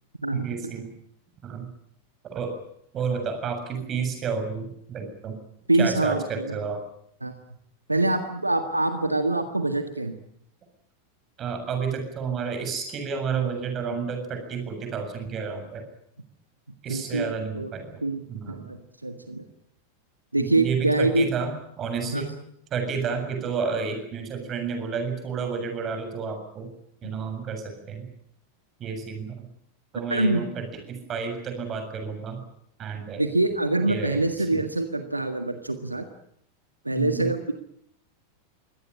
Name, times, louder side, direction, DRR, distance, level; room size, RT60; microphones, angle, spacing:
voice 1, 0.3-0.9 1.4-1.7 2.3-2.5 2.9-5.4 5.8-6.8 11.4-15.8 16.8-18.0 18.3-18.7 20.4-22.3 22.7-26.7 27.0-28.1 28.8-29.4 29.9-32.4 32.8-33.2 33.8-34.6 36.9-37.3, right 5 dB, 30° right, 5 dB, 7.4 m, -31 dB
voice 2, 5.7-6.2 7.2-7.3 7.9-10.2 16.9-17.2 17.5-17.7 18.0-18.2 18.5-18.8 19.0-19.4 20.3-21.3 22.1-22.3 30.1-30.4 33.2-36.1 36.9-37.5, right 2 dB, 85° right, 7 dB, 1.7 m, -24 dB
24.0 x 18.0 x 10.0 m, 0.72 s
figure-of-eight pair, 90°, 0 cm